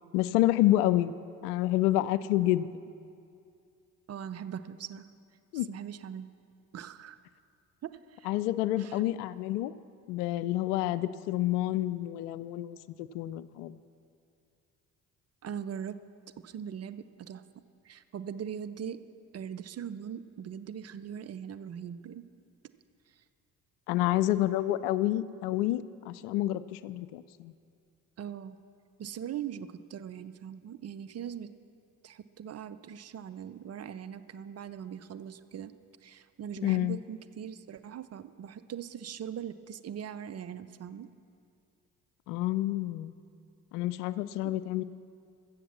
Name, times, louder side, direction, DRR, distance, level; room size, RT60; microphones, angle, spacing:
voice 1, 0.1-1.1 1.4-2.7 5.5-5.7 8.2-9.7 10.1-13.8 23.9-27.5 36.6-37.0 42.3-43.1 43.7-44.8, left 15 dB, 75° left, 16 dB, 0.5 m, -28 dB
voice 2, 4.1-5.1 5.7-6.3 6.7-7.2 7.8-8.3 8.8-9.0 15.4-16.0 16.4-17.4 17.8-19.0 19.3-22.2 28.2-28.6 29.0-31.5 32.0-35.7 36.0-41.1 44.4-44.5, right 8 dB, 35° right, 11 dB, 0.6 m, -41 dB
14.5 x 7.2 x 7.1 m, 2.4 s
figure-of-eight pair, 45°, 47 cm